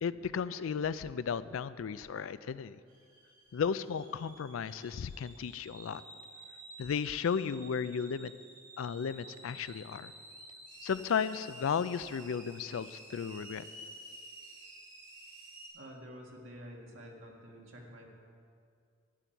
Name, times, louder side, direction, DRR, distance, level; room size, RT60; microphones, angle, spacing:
voice 1, 0.0-2.8 3.5-6.0 6.8-8.3 8.8-10.1 10.8-13.6, left 6 dB, 85° left, 15 dB, 0.4 m, -34 dB
sound 1, 2.9-15.7, right 1 dB, 45° right, 3.2 m, -52 dB
voice 2, 15.7-18.1, equal, 75° right, -1 dB, 1.8 m, -49 dB
12.0 x 9.3 x 4.6 m, 2.3 s
head